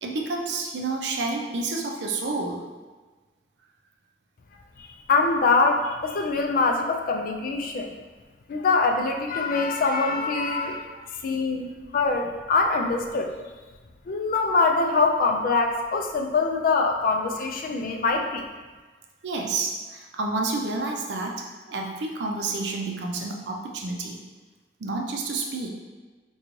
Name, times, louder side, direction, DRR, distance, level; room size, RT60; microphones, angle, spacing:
voice 1, 0.0-2.6 19.2-24.2 24.8-25.7, right 3 dB, 75° right, 1 dB, 0.5 m, -29 dB
voice 2, 4.8-7.9 8.5-13.3 14.1-18.5, left 3 dB, 55° left, 3 dB, 0.4 m, -24 dB
3.8 x 2.3 x 3.0 m, 1.3 s
head